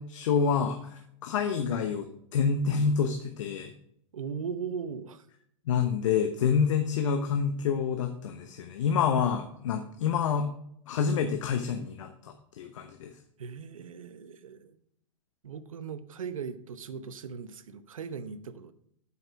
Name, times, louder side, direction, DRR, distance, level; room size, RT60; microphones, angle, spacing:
voice 1, 0.0-3.7 5.7-10.5 10.9-13.1, left 6 dB, 70° left, 0.9 m, -28 dB
voice 2, 4.1-5.3 13.4-14.8 15.4-18.7, right 6 dB, 85° right, 0.8 m, -38 dB
7.7 x 5.8 x 5.9 m
hypercardioid pair, 120°, 17 cm